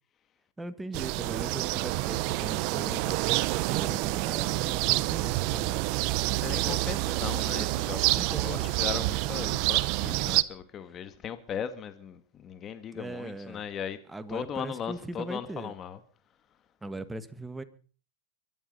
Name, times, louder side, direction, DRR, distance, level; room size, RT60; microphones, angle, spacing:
voice 1, 0.6-5.9 6.3-7.7 8.1-8.7 10.0-10.3 12.9-13.6 14.1-15.7 16.8-17.6, right 2 dB, 5° right, 1.7 m, -40 dB
sound 1, 0.9-10.4, right 20 dB, 50° right, 0.8 m, -28 dB
voice 2, 6.2-14.0 14.3-16.0, left 8 dB, 30° left, 1.9 m, -38 dB
23.0 x 11.5 x 5.6 m
hypercardioid pair, 125°, 0 cm